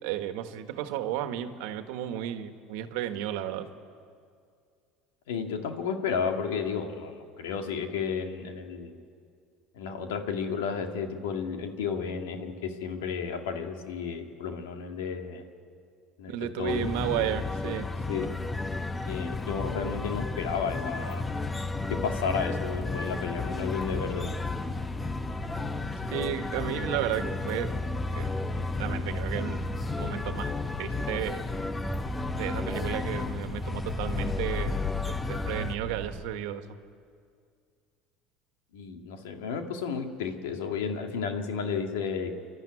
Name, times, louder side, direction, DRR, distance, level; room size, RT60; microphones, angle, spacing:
voice 1, 0.0-3.7 16.3-17.9 26.1-27.7 28.1-28.3 28.6-29.6 30.0-30.5 30.8-31.5 32.3-36.7, right 11 dB, 75° right, 8 dB, 1.4 m, -33 dB
voice 2, 5.3-9.0 9.8-15.4 16.2-16.3 16.6-16.9 18.1-18.3 19.0-21.2 21.9-24.3 38.7-42.3, left 6 dB, 90° left, 4 dB, 2.1 m, -32 dB
sound 1, 16.7-35.8, left 3 dB, 20° left, 0.9 m, -33 dB
sound 2, 19.8-36.2, left 1 dB, 15° right, 4.8 m, -40 dB
28.0 x 12.0 x 9.8 m, 2.2 s
supercardioid pair, 100°, 0 cm